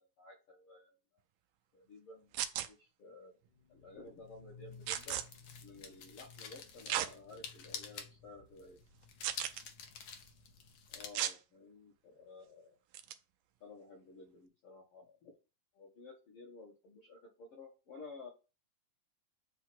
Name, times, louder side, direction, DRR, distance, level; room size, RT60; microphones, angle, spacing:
voice 1, 0.2-0.9 1.7-3.3 3.7-5.2 5.6-8.8 10.9-12.8 13.6-15.4 15.7-18.3, left 3 dB, 50° left, -3 dB, 1.9 m, -54 dB
sound 1, 2.3-2.7 4.9-5.2 6.9-7.1 7.7-7.8 9.2-9.6 11.1-11.4 12.9-13.1, right 11 dB, 80° right, 1.6 m, -35 dB
sound 2, 3.5-11.1, left 6 dB, 90° left, 1.1 m, -50 dB
8.5 x 2.9 x 6.0 m, 0.31 s
omnidirectional pair, 3.8 m